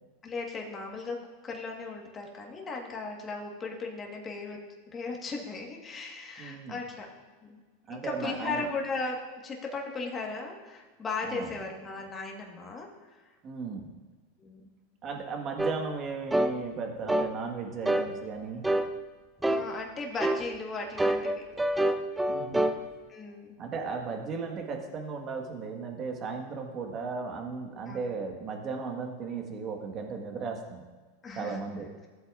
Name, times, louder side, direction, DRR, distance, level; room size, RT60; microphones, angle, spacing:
voice 1, 0.2-4.6 4.9-7.1 7.4-7.6 7.9-12.9 14.4-14.7 19.5-21.4 23.1-23.6 27.9-28.0 31.2-31.7, left 3 dB, 25° left, 0 dB, 1.5 m, -37 dB
voice 2, 6.4-6.8 7.9-8.7 11.2-11.5 13.4-13.9 15.0-18.7 22.3-22.7 23.6-30.8 31.3-31.9, right 4 dB, 35° right, 3 dB, 1.6 m, -36 dB
sound 1, 15.6-15.8 16.3-16.6 17.1-17.3 17.9-18.1 18.6-18.9 19.4-19.7 20.2-20.4 21.0-22.8, right 1 dB, 5° right, 0.5 m, -26 dB
14.5 x 8.0 x 2.5 m, 1.4 s
supercardioid pair, 120°, 0 cm